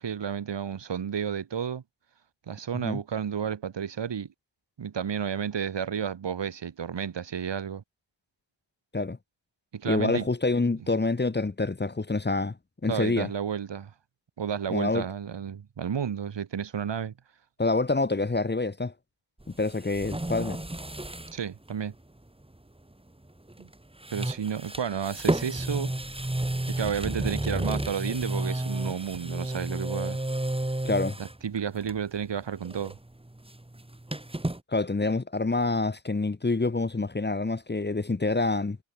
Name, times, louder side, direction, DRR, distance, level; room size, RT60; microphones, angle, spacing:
voice 1, 0.0-1.8 2.5-4.3 4.8-7.8 9.7-10.3 12.9-13.9 14.4-17.1 21.3-21.9 23.6-23.7 24.1-25.9 26.7-30.2 31.2-32.9, right 7 dB, 65° right, 4.5 m, -31 dB
voice 2, 9.9-12.6 12.8-13.3 14.7-15.1 17.6-18.9 19.6-20.6 30.8-31.2 34.7-38.8, left 3 dB, 20° left, 1.8 m, -27 dB
sound 1, 19.4-21.4 21.7-21.8 23.5-23.7 24.0-31.4 31.8-32.2 32.5-34.6, right 1 dB, 10° right, 7.1 m, -32 dB
cardioid pair, 75°, 46 cm